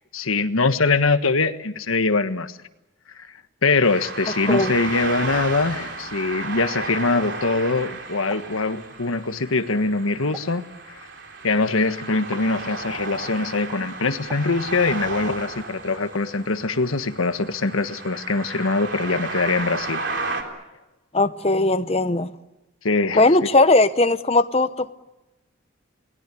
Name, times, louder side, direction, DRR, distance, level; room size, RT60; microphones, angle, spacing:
voice 1, 0.1-2.6 3.2-3.3 3.6-10.6 11.4-20.0 22.8-23.4, left 3 dB, 90° left, 1.4 m, -23 dB
sound 1, 3.8-20.4, right 3 dB, 60° right, 3.6 m, -33 dB
sound 2, 8.3-8.6 10.3-10.7 12.3-12.5 14.3-14.6, right 1 dB, 15° right, 3.8 m, -40 dB
voice 2, 21.1-22.3 23.1-24.9, left 2 dB, 30° left, 0.9 m, -18 dB
29.5 x 20.0 x 8.4 m
head